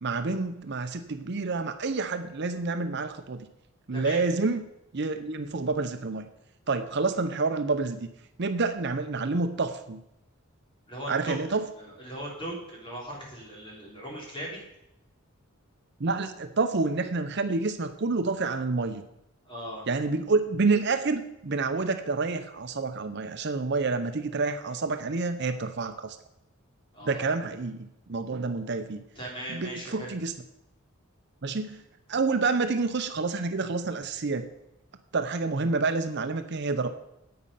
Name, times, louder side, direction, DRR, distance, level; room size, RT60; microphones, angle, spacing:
voice 1, 0.0-3.5 3.9-4.6 4.9-6.3 6.7-8.1 8.4-10.0 11.1-11.7 16.0-19.0 19.9-26.2 27.1-29.0 29.5-30.3 31.4-31.8 32.1-34.5 35.1-36.9, right 3 dB, 55° right, 8 dB, 0.7 m, -28 dB
voice 2, 3.9-4.2 10.9-11.4 11.8-14.6 19.5-19.8 26.9-27.2 29.2-30.1, right 1 dB, 25° left, -3 dB, 3.8 m, -38 dB
9.6 x 8.6 x 5.6 m, 0.84 s
head